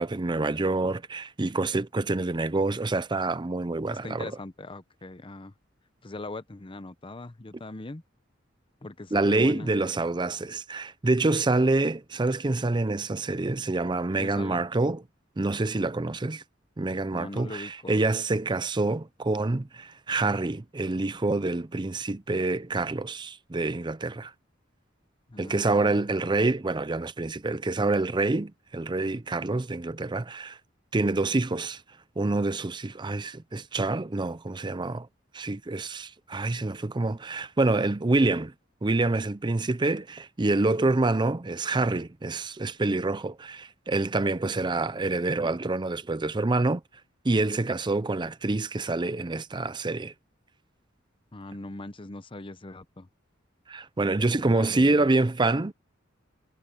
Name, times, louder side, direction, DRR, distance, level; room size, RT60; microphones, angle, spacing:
voice 1, 0.0-4.3 9.1-15.0 15.4-16.4 16.8-24.3 25.4-30.6 30.9-31.8 32.2-35.1 35.3-38.5 38.8-46.8 47.2-50.1 53.7-55.7, right 2 dB, 25° right, 0.6 m, -27 dB
voice 2, 3.9-5.5 6.0-8.0 8.8-9.7 14.2-14.6 17.1-18.0 25.3-26.1 51.3-53.1 54.3-55.1, left 2 dB, 25° left, 0.8 m, -41 dB
head